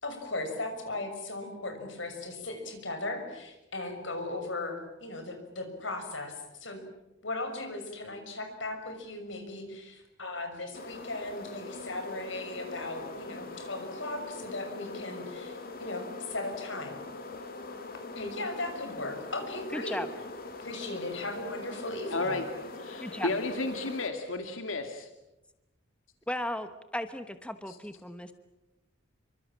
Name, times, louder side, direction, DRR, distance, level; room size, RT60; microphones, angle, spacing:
voice 1, 0.0-6.8 7.2-17.0 18.1-20.0 20.6-22.3, left 2 dB, 70° left, 6 dB, 6.3 m, -37 dB
sound 1, 10.7-24.1, left 3 dB, 45° left, 3.0 m, -42 dB
voice 2, 19.7-20.1 23.0-23.4 26.3-28.3, left 1 dB, 5° left, 9 dB, 1.1 m, -35 dB
voice 3, 22.1-22.4 22.8-25.1 27.7-27.8, left 2 dB, 85° left, 5 dB, 2.3 m, -32 dB
27.5 x 24.5 x 7.4 m, 0.97 s
head